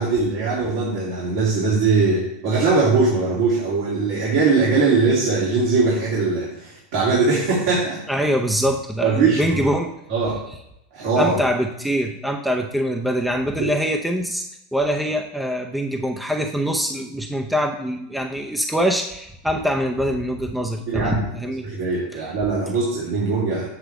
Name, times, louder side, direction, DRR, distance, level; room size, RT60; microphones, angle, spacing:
voice 1, 0.0-8.0 9.0-9.8 10.1-10.4 10.9-11.4 13.6-13.7 20.9-21.2 21.6-23.7, right 4 dB, 70° right, -8 dB, 3.2 m, -21 dB
voice 2, 8.1-9.9 11.2-14.4 14.7-21.6, equal, ahead, 2 dB, 0.7 m, -23 dB
8.1 x 3.4 x 6.5 m, 0.83 s
hypercardioid pair, 115°, 0 cm